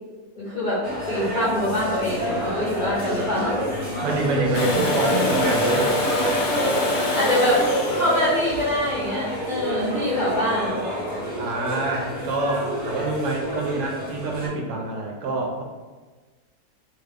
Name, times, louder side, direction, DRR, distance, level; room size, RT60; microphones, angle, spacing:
voice 1, 0.3-0.8 1.1-3.6 4.5-4.6 7.1-7.6 8.0-10.8, left 1 dB, 45° left, -10 dB, 0.6 m, -24 dB
sound 1, 0.8-14.5, right 1 dB, 45° right, 0.9 m, -27 dB
voice 2, 4.0-6.0 11.4-15.6, right 3 dB, 80° right, 0 dB, 1.2 m, -27 dB
Domestic sounds home sounds, 4.5-10.3 12.3-12.4, left 2 dB, 75° left, 1.0 m, -27 dB
3.0 x 2.4 x 3.3 m, 1.3 s
omnidirectional pair, 1.8 m